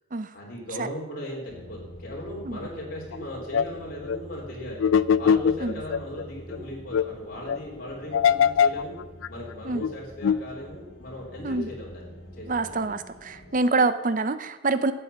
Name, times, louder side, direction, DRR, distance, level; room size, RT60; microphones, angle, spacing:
voice 1, 0.3-4.8 5.2-9.0 9.3-12.9 13.6-13.9, left 1 dB, 50° left, -3 dB, 3.4 m, -38 dB
sound 1, 1.5-13.6, equal, 70° left, 2.0 m, -46 dB
sound 2, 3.1-3.2 3.5-3.7 4.1-4.2 4.8-6.2 6.5-6.6 6.9-7.1 7.5-7.6 8.1-8.8 9.2-9.3 9.8-9.9 10.2-10.4, left 7 dB, 90° left, 0.4 m, -21 dB
voice 2, 12.5-14.9, right 3 dB, 40° right, 12 dB, 0.6 m, -26 dB
12.0 x 8.3 x 5.6 m, 1.1 s
head